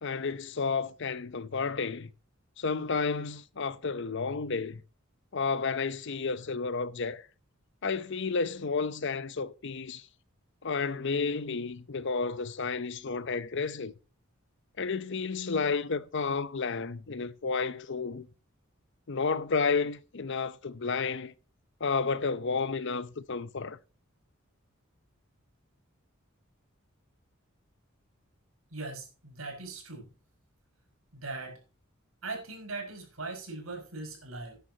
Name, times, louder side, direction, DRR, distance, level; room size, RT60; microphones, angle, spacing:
voice 1, 0.0-2.1 2.6-4.8 5.3-7.3 7.8-10.1 10.6-13.9 14.8-18.3 19.1-21.3 21.8-23.8, left 4 dB, 60° left, 0.8 m, -31 dB
voice 2, 28.7-30.1 31.1-31.6 32.2-34.6, right 3 dB, 90° right, 5.8 m, -40 dB
14.0 x 10.5 x 2.9 m
head